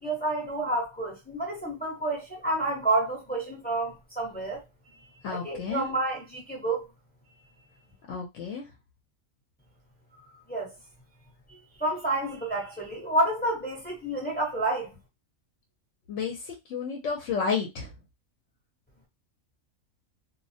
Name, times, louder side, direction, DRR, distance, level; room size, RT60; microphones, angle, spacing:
voice 1, 0.0-4.6 4.9-6.9 10.5-10.8 11.8-14.9, right 2 dB, 10° left, 0.6 m, -29 dB
voice 2, 5.2-5.8 8.1-8.7 16.1-17.9, left 5 dB, 65° left, 0.8 m, -31 dB
2.3 x 2.0 x 2.6 m
omnidirectional pair, 1.5 m